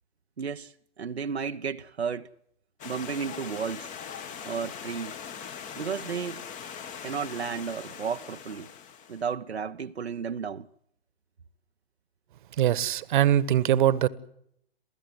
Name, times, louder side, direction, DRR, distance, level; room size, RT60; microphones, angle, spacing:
voice 1, 0.4-2.3 2.8-3.9 4.4-5.2 5.8-6.4 7.0-8.7 9.1-10.7, right 6 dB, 85° right, 0.9 m, -33 dB
Stream, 2.8-9.3, left 7 dB, 25° left, 1.5 m, -41 dB
voice 2, 12.6-14.1, right 11 dB, 50° right, 1.4 m, -22 dB
28.0 x 16.0 x 7.8 m
figure-of-eight pair, 120°, 31 cm